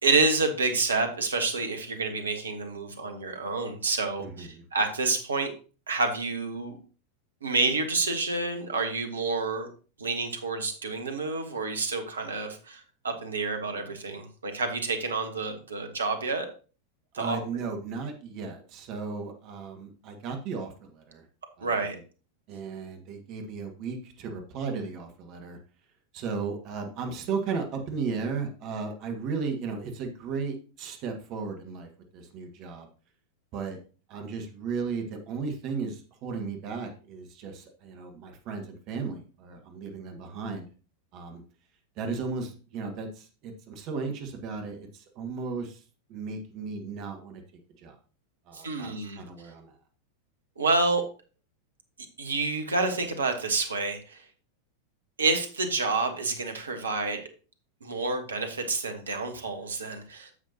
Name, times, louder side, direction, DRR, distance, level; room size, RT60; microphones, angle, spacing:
voice 1, 0.0-5.5 5.9-6.8 7.4-9.7 10.0-16.5 17.1-17.4 21.6-22.0 48.5-49.2 50.6-51.0 52.2-54.2 55.2-57.2 57.8-60.3, right 3 dB, 70° right, 6 dB, 1.4 m, -28 dB
voice 2, 4.2-4.6 17.2-21.2 21.6-21.9 22.5-25.6 26.1-32.9 33.5-33.8 34.1-40.7 41.1-41.4 42.0-45.8 46.1-47.4 47.8-47.9 48.5-48.9 49.2-49.7, right 5 dB, 40° right, 4 dB, 1.6 m, -35 dB
9.9 x 7.1 x 2.9 m, 0.36 s
figure-of-eight pair, 90°, 0 cm